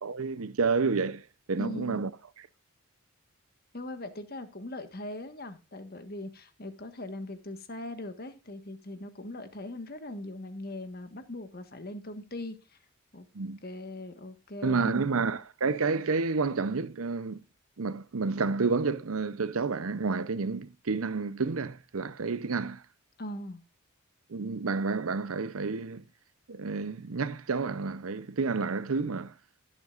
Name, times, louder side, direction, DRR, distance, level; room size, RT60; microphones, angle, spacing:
voice 1, 0.0-1.2 1.5-2.1 13.3-13.6 14.6-17.4 17.8-22.8 24.3-26.0 26.5-29.3, right 4 dB, 80° right, 0.7 m, -30 dB
voice 2, 1.6-2.0 3.7-12.8 13.1-13.3 13.6-15.1 23.2-23.6, left 1 dB, 45° left, 1.5 m, -40 dB
20.0 x 7.7 x 2.5 m
head